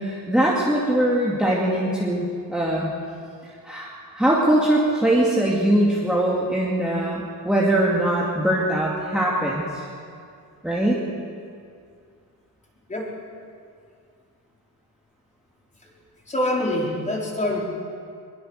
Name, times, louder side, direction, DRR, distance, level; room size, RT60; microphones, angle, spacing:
voice 1, 0.0-2.9 3.6-9.7 10.6-11.0, right 1 dB, ahead, -5 dB, 2.4 m, -21 dB
voice 2, 16.3-17.6, left 1 dB, 20° left, -3 dB, 4.5 m, -25 dB
22.5 x 22.0 x 6.6 m, 2.3 s
wide cardioid pair, 155°, 37 cm